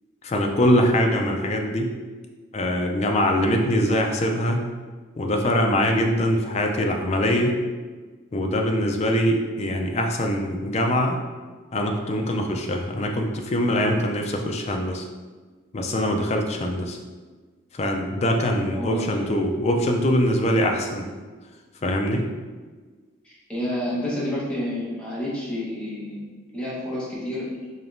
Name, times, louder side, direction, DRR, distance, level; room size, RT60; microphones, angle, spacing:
voice 1, 0.2-1.9 2.5-4.7 5.2-7.5 8.3-11.2 11.7-15.0 15.7-17.0 17.7-21.1 21.8-22.2, equal, 30° left, 2 dB, 0.4 m, -23 dB
voice 2, 18.7-19.3 23.2-26.2 26.5-27.5, left 1 dB, 5° left, -9 dB, 1.1 m, -29 dB
5.1 x 2.9 x 2.6 m, 1.4 s
head